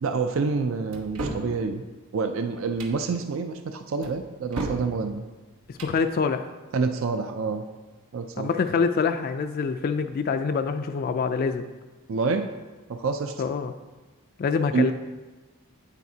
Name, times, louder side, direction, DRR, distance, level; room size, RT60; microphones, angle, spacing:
voice 1, 0.0-1.8 2.1-5.2 6.7-7.6 8.1-8.5 12.1-12.5 12.9-13.3 14.7-14.9, right 4 dB, 60° right, 7 dB, 0.4 m, -27 dB
sound 1, 0.9-1.5 2.6-3.0 4.0-4.9 5.6-6.0, right 2 dB, 90° right, 1.1 m, -33 dB
voice 2, 5.7-6.5 8.4-11.6 13.4-13.7 14.4-14.9, left 5 dB, 45° left, 7 dB, 0.3 m, -25 dB
9.0 x 8.4 x 2.8 m, 1.2 s
head